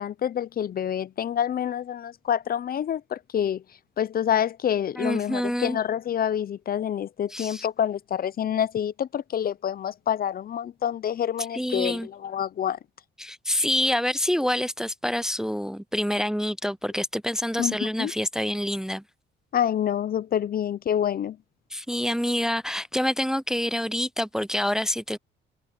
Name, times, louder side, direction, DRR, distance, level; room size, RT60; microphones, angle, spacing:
voice 1, 0.0-3.6 4.0-12.8 17.6-18.1 19.5-21.4, left 9 dB, 50° left, 0.6 m, -27 dB
voice 2, 5.0-5.8 7.3-7.6 11.5-12.1 13.2-19.0 21.7-25.2, equal, 5° right, 0.5 m, -27 dB
cardioid pair, 90°, 20 cm